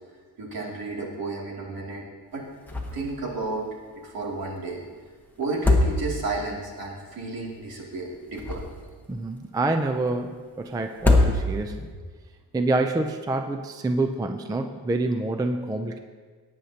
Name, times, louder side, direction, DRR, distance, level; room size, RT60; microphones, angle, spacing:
voice 1, 0.4-2.0 2.3-2.5 2.9-3.7 4.0-4.8 5.4-8.7, right 3 dB, 65° right, -3 dB, 2.6 m, -32 dB
sound 1, 2.7-3.2 3.5-3.6 5.4-6.4 8.1-9.0 10.9-11.8, left 2 dB, 5° left, 1.0 m, -23 dB
voice 2, 9.1-11.9 12.5-16.0, right 2 dB, 10° right, 6 dB, 0.3 m, -27 dB
18.0 x 9.2 x 2.8 m, 1.5 s
wide cardioid pair, 170°, 39 cm